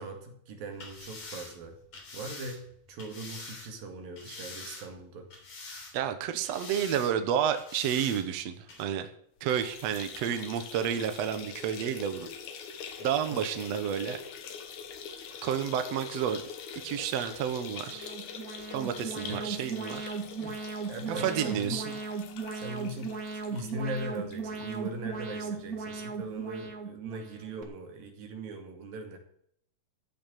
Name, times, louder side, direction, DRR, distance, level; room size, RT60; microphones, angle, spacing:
voice 1, 0.0-1.8 2.1-5.3 13.3-13.4 19.3-19.5 20.4-20.6 20.9-22.0 22.5-23.2 23.5-29.2, right 2 dB, 85° right, 3 dB, 4.0 m, -40 dB
sound 1, 0.7-3.7 4.2-5.0 5.3-6.1 6.4-7.1 7.5-8.2 8.7-8.8, left 3 dB, 50° left, 4.4 m, -45 dB
voice 2, 5.9-9.1 9.4-12.3 13.0-14.2 15.4-16.4 16.8-18.1 18.7-20.2 21.1-21.9, right 9 dB, 65° right, 8 dB, 1.9 m, -30 dB
sound 2, 9.4-24.8 25.2-25.3 25.6-25.7 26.7-26.8, left 6 dB, 65° left, 2.5 m, -44 dB
Alarm, 17.8-27.6, right 4 dB, 40° right, 1.2 m, -37 dB
14.0 x 6.0 x 9.2 m, 0.67 s
omnidirectional pair, 4.0 m